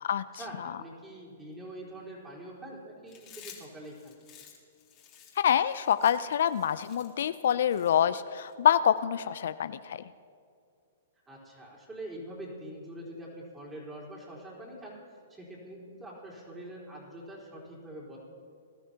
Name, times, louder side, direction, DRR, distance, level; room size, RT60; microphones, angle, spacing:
voice 1, 0.3-4.2 11.3-15.0 15.3-18.2, right 1 dB, 15° right, -5 dB, 4.1 m, -44 dB
Chewing mastication, 3.1-8.5, left 9 dB, 30° left, 2.5 m, -53 dB
voice 2, 5.4-10.0, left 9 dB, 70° left, 14 dB, 0.4 m, -26 dB
20.5 x 13.0 x 2.9 m, 2.3 s
hypercardioid pair, 130°, 0 cm